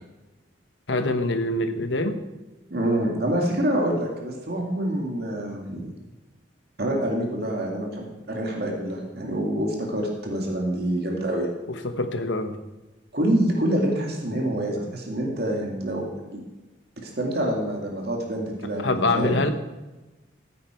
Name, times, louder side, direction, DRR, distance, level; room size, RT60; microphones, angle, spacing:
voice 1, 0.9-2.2 11.8-12.5 18.8-19.5, left 2 dB, 80° left, 8 dB, 1.1 m, -24 dB
voice 2, 2.7-5.9 6.8-11.5 13.1-16.4 17.0-19.4, right 1 dB, 55° right, 0 dB, 2.3 m, -26 dB
15.0 x 8.6 x 4.5 m, 1.1 s
head